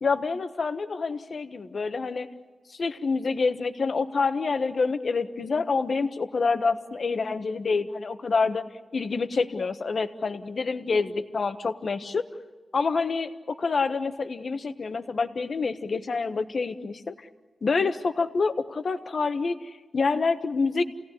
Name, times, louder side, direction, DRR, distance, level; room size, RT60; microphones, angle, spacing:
voice 1, 0.0-2.3 2.7-8.6 8.9-12.2 12.7-17.1 17.6-20.8, left 4 dB, 60° left, 9 dB, 1.3 m, -27 dB
28.5 x 18.0 x 9.9 m, 1.4 s
wide cardioid pair, 100°, 0 cm